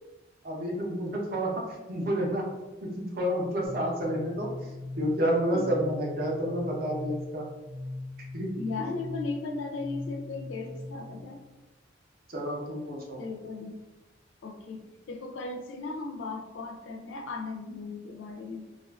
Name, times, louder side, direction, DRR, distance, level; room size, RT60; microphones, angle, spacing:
voice 1, 0.4-2.5 2.8-4.7 5.0-7.4 8.3-8.5 8.8-8.9 12.3-13.2, equal, 50° right, -1 dB, 0.5 m, -30 dB
sound 1, 3.7-11.2, left 2 dB, ahead, 0.5 m, -40 dB
voice 2, 8.5-11.4 13.2-13.8 14.4-18.7, left 3 dB, 70° left, 4 dB, 0.4 m, -36 dB
2.3 x 2.3 x 2.3 m, 1.1 s
head